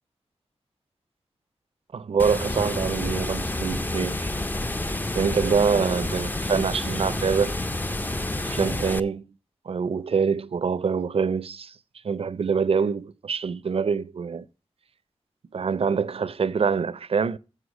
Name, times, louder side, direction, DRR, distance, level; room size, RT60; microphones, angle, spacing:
voice 1, 1.9-4.3 5.1-7.5 8.5-9.2 9.7-11.8 12.0-14.5 15.5-17.4, right 6 dB, 60° right, 0.4 m, -25 dB
Water, 2.2-9.0, left 1 dB, 15° left, 0.5 m, -29 dB
7.6 x 6.4 x 6.1 m
wide cardioid pair, 80°, 11 cm